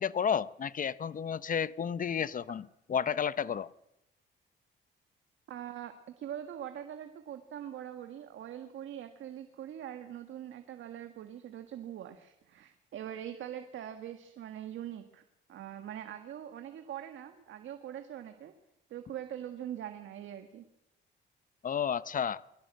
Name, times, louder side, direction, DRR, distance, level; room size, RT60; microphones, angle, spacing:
voice 1, 0.0-3.7 21.6-22.4, left 7 dB, 45° left, 17 dB, 0.7 m, -32 dB
voice 2, 5.5-15.2 15.5-18.5 18.9-20.6, right 10 dB, 75° right, 7 dB, 1.7 m, -43 dB
22.5 x 17.5 x 7.8 m, 0.86 s
cardioid pair, 90°, 20 cm